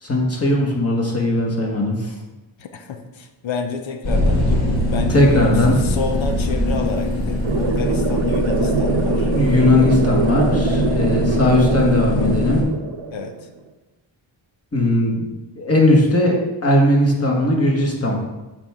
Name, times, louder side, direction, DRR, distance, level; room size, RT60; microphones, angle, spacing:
voice 1, 0.0-2.1 5.1-5.7 9.3-12.7 14.7-18.1, left 1 dB, 30° left, -1 dB, 1.7 m, -18 dB
voice 2, 2.6-9.3 13.1-13.5, left 5 dB, 70° left, 6 dB, 0.8 m, -30 dB
sound 1, 4.0-12.6, left 1 dB, 50° left, 2.2 m, -21 dB
sound 2, 7.4-13.4, right 5 dB, 70° right, 0.9 m, -24 dB
7.3 x 4.6 x 3.6 m, 1.1 s
cardioid pair, 70°, 48 cm